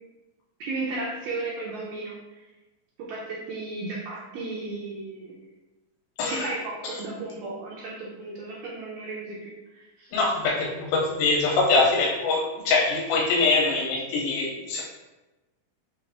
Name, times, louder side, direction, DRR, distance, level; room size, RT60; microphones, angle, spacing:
voice 1, 0.6-2.4 3.1-5.3 6.3-10.1, right 3 dB, 80° right, -4 dB, 2.0 m, -34 dB
voice 2, 10.1-14.8, left 3 dB, 85° left, -3 dB, 2.4 m, -23 dB
5.9 x 2.4 x 3.4 m, 1.1 s
omnidirectional pair, 4.4 m